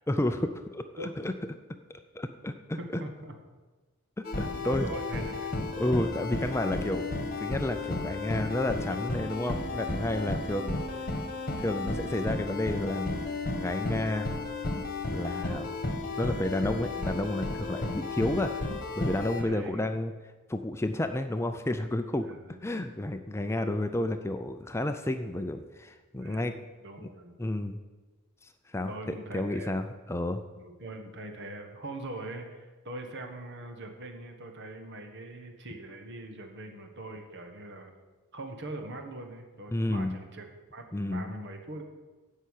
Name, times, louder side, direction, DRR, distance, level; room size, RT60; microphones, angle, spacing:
voice 1, 0.1-1.3 2.1-3.0 4.4-4.9 5.8-10.8 11.6-13.2 13.6-14.3 15.1-15.7 16.2-18.5 19.0-20.1 20.5-22.3 22.6-26.6 27.0-27.1 27.4-27.8 28.4-30.4 39.7-40.2 40.9-41.3, left 1 dB, 10° left, 7 dB, 0.5 m, -31 dB
voice 2, 2.8-3.3 4.6-5.5 10.6-11.2 19.4-19.9 22.2-22.7 26.2-27.3 28.9-29.8 30.6-37.9 38.3-41.8, right 1 dB, 55° right, 5 dB, 1.5 m, -42 dB
sound 1, 4.2-19.4, left 2 dB, 40° left, 1.3 m, -33 dB
15.5 x 5.6 x 6.5 m, 1.3 s
head